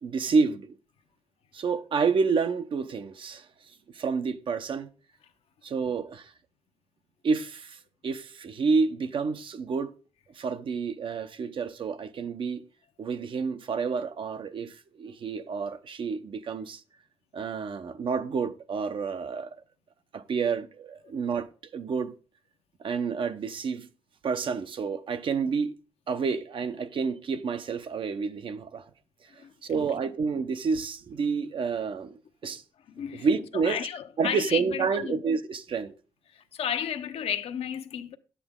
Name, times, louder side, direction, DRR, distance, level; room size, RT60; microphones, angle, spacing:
voice 1, 0.0-0.7 1.5-3.4 3.9-4.9 5.6-6.3 7.2-9.9 10.4-12.6 13.0-16.8 17.3-19.5 20.1-21.5 21.7-22.1 22.8-23.9 24.2-25.7 26.1-28.9 29.6-32.6 33.1-33.8 34.2-35.9, right 5 dB, 50° right, 0.9 m, -29 dB
voice 2, 29.4-29.9 32.4-32.5 32.9-33.3 33.5-35.2 36.3-38.2, left 8 dB, 70° left, 0.9 m, -33 dB
11.0 x 8.5 x 3.7 m
cardioid pair, 110°, 11 cm